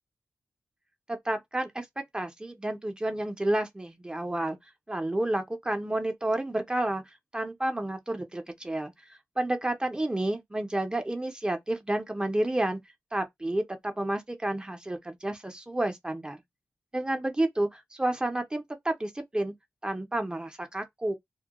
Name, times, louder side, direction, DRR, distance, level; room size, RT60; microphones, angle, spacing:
voice 1, 1.1-1.9 2.1-4.6 4.9-8.9 9.4-12.8 13.1-16.4 16.9-19.5 19.8-21.1, right 1 dB, 15° right, 0.5 m, -30 dB
2.2 x 2.1 x 2.8 m
wide cardioid pair, 80°, 5 cm